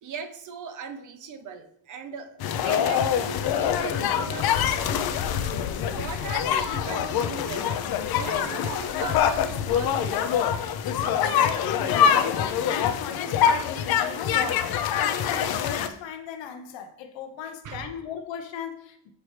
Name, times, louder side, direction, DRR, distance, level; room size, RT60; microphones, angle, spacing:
voice 1, 0.0-5.5 5.9-7.8 8.1-10.3 17.4-17.9, right 6 dB, 45° right, 0.6 m, -39 dB
sound 1, 2.4-15.9, left 8 dB, 55° left, 0.5 m, -25 dB
voice 2, 11.1-19.1, left 8 dB, 75° left, 0.9 m, -35 dB
8.0 x 4.5 x 3.2 m
cardioid pair, 170°, 45 cm